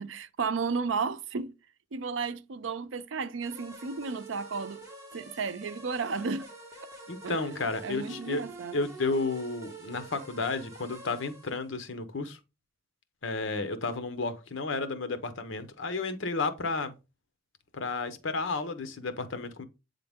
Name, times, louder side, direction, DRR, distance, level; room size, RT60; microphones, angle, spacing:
voice 1, 0.0-1.5 1.9-4.8 5.1-6.5 7.2-8.8, right 5 dB, 80° right, 0.5 m, -33 dB
sound 1, 3.4-11.7, right 3 dB, 15° right, 1.7 m, -47 dB
voice 2, 7.1-8.4 8.7-12.4 13.2-16.9 17.7-19.6, left 3 dB, 75° left, 0.9 m, -32 dB
8.0 x 3.7 x 3.5 m
head